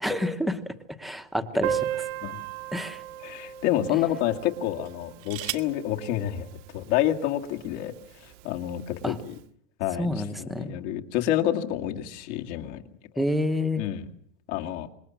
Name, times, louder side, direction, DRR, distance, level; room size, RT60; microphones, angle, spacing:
voice 1, 0.0-0.6 1.0-2.1 2.7-3.0 9.0-9.1 10.0-10.8 13.2-13.8, left 1 dB, ahead, 7 dB, 0.9 m, -28 dB
sound 1, 1.0-2.3 3.0-3.2 4.8-5.8 7.0-7.1 7.4-7.8, right 18 dB, 85° right, 1.8 m, -38 dB
Piano, 1.6-7.0 7.2-7.3 7.6-7.7 8.0-8.1 8.9-9.1, right 10 dB, 65° right, 1.2 m, -35 dB
voice 2, 3.2-7.9 8.2-9.3 9.8-12.8 13.2-13.3 13.8-14.1 14.5-14.9, left 12 dB, 60° left, 3 dB, 2.4 m, -28 dB
26.5 x 22.0 x 7.4 m, 0.66 s
supercardioid pair, 180°, 39 cm